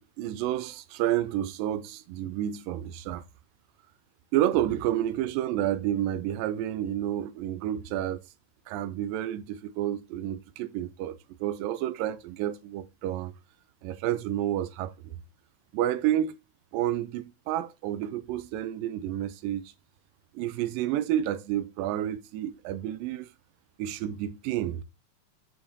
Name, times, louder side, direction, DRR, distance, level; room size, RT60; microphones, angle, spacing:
voice 1, 0.0-3.2 4.3-8.2 8.7-13.3 13.8-15.2 15.7-16.4 16.7-19.6 20.3-23.3 23.8-24.8, right 12 dB, 85° right, 2.3 m, -30 dB
9.1 x 6.3 x 2.7 m
omnidirectional pair, 4.0 m